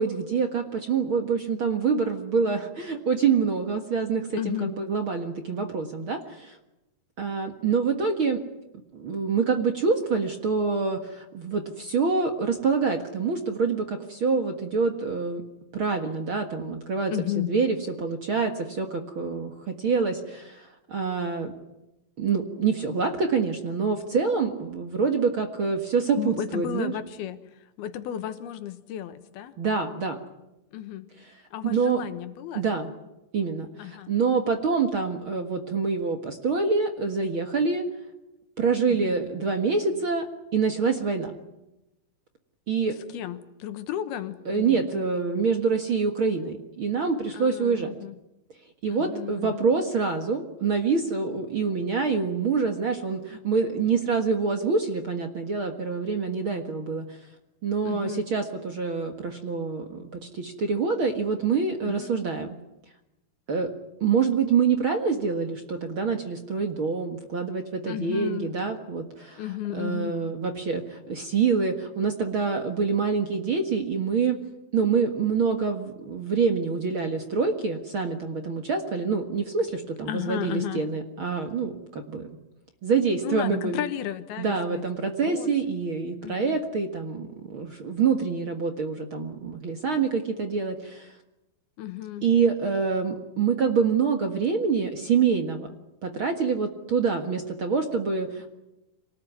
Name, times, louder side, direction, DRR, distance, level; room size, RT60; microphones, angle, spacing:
voice 1, 0.0-6.6 7.2-8.4 8.9-15.4 15.7-21.5 22.2-26.9 29.6-30.2 31.6-32.0 32.5-32.9 33.3-37.8 38.6-40.3 40.5-41.4 42.7-42.9 44.5-48.0 48.8-57.1 57.6-62.5 63.5-63.7 64.0-69.4 69.7-74.4 74.7-82.3 82.8-83.8 84.4-91.1 92.2-95.7 96.0-98.6, right 5 dB, 45° right, 5 dB, 1.8 m, -26 dB
voice 2, 4.4-4.7 17.1-17.5 26.2-27.4 27.8-29.5 30.7-31.1 31.5-32.6 33.8-34.1 38.9-39.2 42.9-45.1 47.3-48.2 48.9-49.7 57.8-58.2 61.8-62.1 67.8-68.5 69.4-70.1 80.1-80.8 83.2-84.8 85.3-85.5 86.2-86.6 91.8-92.2, left 12 dB, 85° left, 10 dB, 3.2 m, -33 dB
26.5 x 18.5 x 9.6 m, 0.95 s
omnidirectional pair, 4.4 m